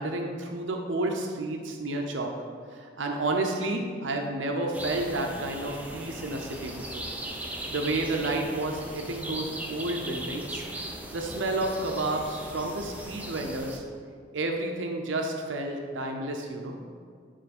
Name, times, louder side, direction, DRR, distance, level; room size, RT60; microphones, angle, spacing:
voice 1, 0.0-2.3 2.7-7.0 7.7-10.6 11.1-13.8 14.3-16.7, right 2 dB, 85° right, 2 dB, 0.7 m, -31 dB
sound 1, 4.7-13.8, right 1 dB, 10° right, 0.7 m, -38 dB
9.1 x 4.5 x 4.2 m, 2.1 s
head